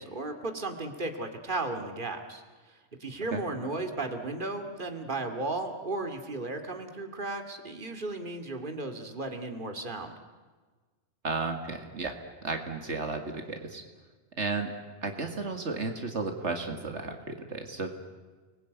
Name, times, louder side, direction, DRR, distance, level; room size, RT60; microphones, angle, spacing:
voice 1, 0.0-10.1, right 2 dB, 45° right, 5 dB, 2.6 m, -35 dB
voice 2, 11.2-12.2 12.4-13.8 14.4-14.7 15.0-18.2, right 3 dB, 75° right, 5 dB, 2.4 m, -33 dB
29.5 x 21.0 x 9.4 m, 1.4 s
omnidirectional pair, 1.2 m